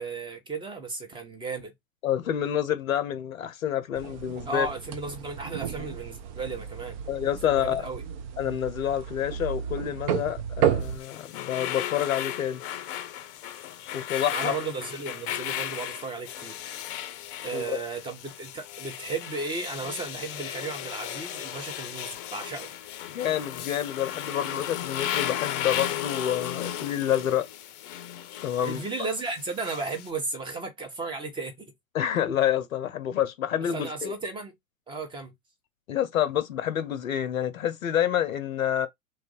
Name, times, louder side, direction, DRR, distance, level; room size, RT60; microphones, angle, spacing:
voice 1, 0.0-1.7 4.4-7.0 7.4-8.0 14.3-16.8 17.4-22.7 28.6-31.7 33.6-34.5 34.9-35.3, right 3 dB, 10° right, 0.8 m, -34 dB
voice 2, 2.0-4.7 7.1-7.8 8.4-12.6 13.9-14.5 17.5-17.8 23.1-27.5 28.4-28.8 31.9-34.1 35.9-38.9, left 10 dB, 80° left, 0.7 m, -28 dB
sound 1, 3.9-11.0, right 9 dB, 30° right, 0.3 m, -32 dB
sound 2, 10.8-30.1, left 11 dB, 40° left, 0.6 m, -35 dB
3.1 x 2.3 x 3.8 m
hypercardioid pair, 110°, 40 cm